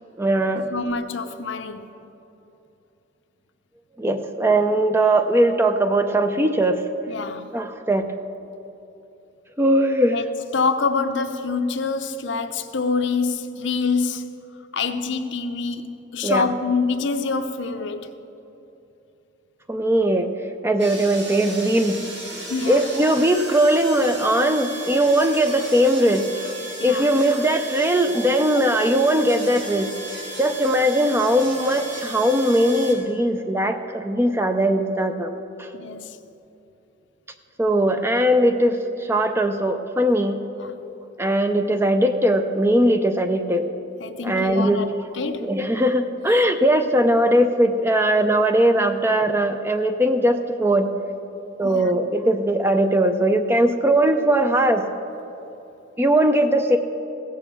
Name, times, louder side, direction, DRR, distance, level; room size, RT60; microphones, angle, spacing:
voice 1, 0.2-0.7 4.0-6.8 7.5-8.1 9.6-10.2 16.2-16.5 19.7-20.3 20.6-22.0 22.7-26.5 26.8-29.9 30.4-35.7 37.6-38.8 39.1-40.4 41.2-43.6 44.2-45.0 45.4-50.9 51.6-54.8 56.0-56.8, right 1 dB, 10° right, 0.4 m, -20 dB
voice 2, 0.7-1.8 7.1-7.5 10.1-10.2 10.5-14.3 14.7-15.9 16.1-18.1 22.3-22.9 26.8-27.1 35.7-36.1 40.6-40.7 44.0-44.9 45.1-45.5 51.6-51.9, left 4 dB, 65° left, 0.6 m, -26 dB
sound 1, 20.8-32.9, right 2 dB, 65° right, 2.2 m, -35 dB
16.0 x 7.2 x 7.0 m
head